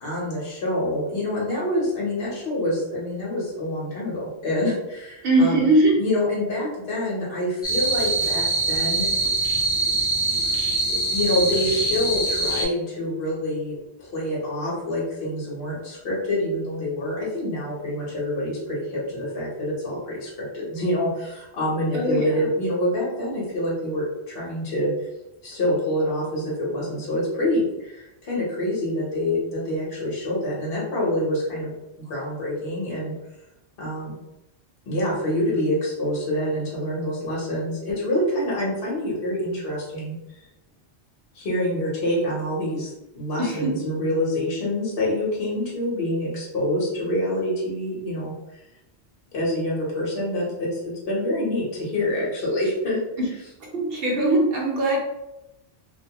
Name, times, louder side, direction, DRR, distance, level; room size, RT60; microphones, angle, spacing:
voice 1, 0.0-5.6 6.0-9.1 10.9-24.9 25.4-31.7 32.0-33.1 33.8-34.2 34.9-40.2 41.3-48.3 49.3-53.0, left 1 dB, 65° left, -6 dB, 1.1 m, -26 dB
voice 2, 5.2-5.9 21.9-22.5 43.4-43.7 53.6-55.0, right 1 dB, 60° right, -2 dB, 0.9 m, -21 dB
sound 1, 7.6-12.6, right 2 dB, 5° left, 0.4 m, -23 dB
2.5 x 2.2 x 2.8 m, 0.90 s
omnidirectional pair, 1.2 m